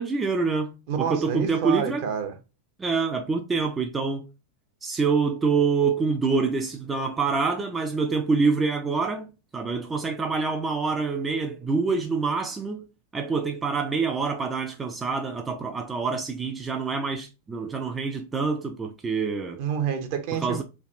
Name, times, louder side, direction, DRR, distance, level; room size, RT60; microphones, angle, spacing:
voice 1, 0.0-2.0 2.8-4.2 4.8-9.3 9.5-12.8 13.1-19.6 20.4-20.6, right 4 dB, 15° right, 0.3 m, -26 dB
voice 2, 0.9-2.4 19.6-20.6, right 7 dB, 45° right, 0.7 m, -28 dB
3.2 x 2.3 x 2.5 m
figure-of-eight pair, 90°, 0 cm